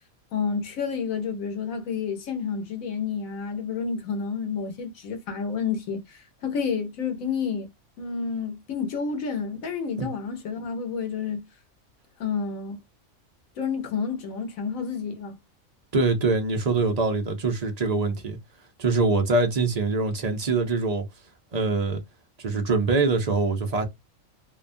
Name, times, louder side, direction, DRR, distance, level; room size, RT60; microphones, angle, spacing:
voice 1, 0.3-7.7 8.0-11.5 12.2-12.8 13.6-15.3, left 6 dB, 85° left, 1.2 m, -30 dB
voice 2, 15.9-18.4 18.8-21.1 21.5-22.0 22.4-23.9, right 3 dB, 45° right, 0.5 m, -24 dB
2.8 x 2.2 x 2.5 m
omnidirectional pair, 1.4 m